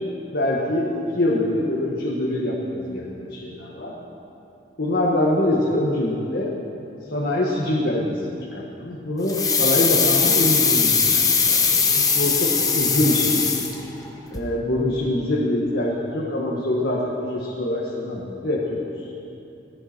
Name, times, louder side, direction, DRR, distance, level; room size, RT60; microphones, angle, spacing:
voice 1, 0.3-3.9 4.8-6.5 7.1-8.2 8.5-13.4 14.3-19.1, left 1 dB, 65° left, -4 dB, 1.7 m, -24 dB
sound 1, 9.3-14.1 14.3-14.4, left 5 dB, 20° left, 1.0 m, -20 dB
17.5 x 15.0 x 4.5 m, 2.8 s
head